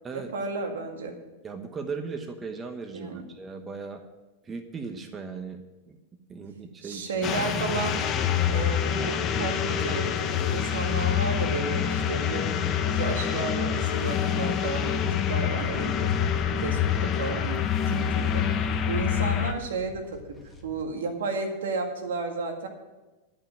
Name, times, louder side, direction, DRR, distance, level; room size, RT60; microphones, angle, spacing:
voice 1, 0.1-1.1 2.9-3.3 6.8-8.0 8.5-15.9 16.6-17.6 17.9-18.4 18.9-20.0 20.6-22.7, right 3 dB, 80° right, 4 dB, 1.9 m, -33 dB
voice 2, 1.4-4.0 4.4-6.0 6.3-7.3 15.3-15.6, right 4 dB, 20° right, 7 dB, 1.1 m, -38 dB
sound 1, 7.2-19.5, left 8 dB, 30° left, 1.0 m, -26 dB
sound 2, 15.6-20.9, left 1 dB, 5° left, 1.6 m, -44 dB
11.0 x 5.8 x 8.6 m, 1.1 s
hypercardioid pair, 110°, 0 cm